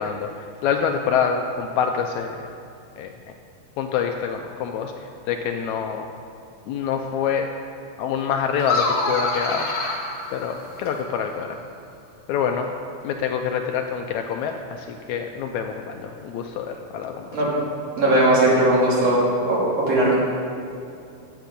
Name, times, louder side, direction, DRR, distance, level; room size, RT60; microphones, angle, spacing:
voice 1, 0.0-2.5 3.0-3.1 3.8-4.9 5.3-6.1 6.7-7.5 8.0-9.7 10.3-11.6 12.3-12.7 13.0-17.3, left 7 dB, 80° left, 4 dB, 1.7 m, -26 dB
sound 1, 8.6-11.1, left 3 dB, 50° left, 1.1 m, -26 dB
voice 2, 18.0-19.6 19.9-20.2, right 1 dB, 50° right, -7 dB, 3.8 m, -18 dB
12.0 x 7.8 x 5.3 m, 2.6 s
omnidirectional pair, 3.8 m